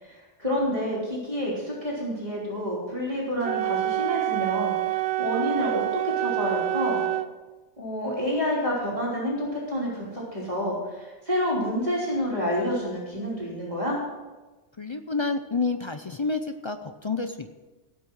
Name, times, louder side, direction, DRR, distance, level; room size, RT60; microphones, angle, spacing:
voice 1, 0.0-7.0 7.8-14.0, equal, 30° right, -5 dB, 3.4 m, -29 dB
Wind instrument woodwind instrument, 3.4-7.3, right 15 dB, 65° right, 0.8 m, -27 dB
voice 2, 14.8-17.5, left 4 dB, 35° left, 8 dB, 0.4 m, -29 dB
17.5 x 6.1 x 6.2 m, 1.2 s
omnidirectional pair, 1.2 m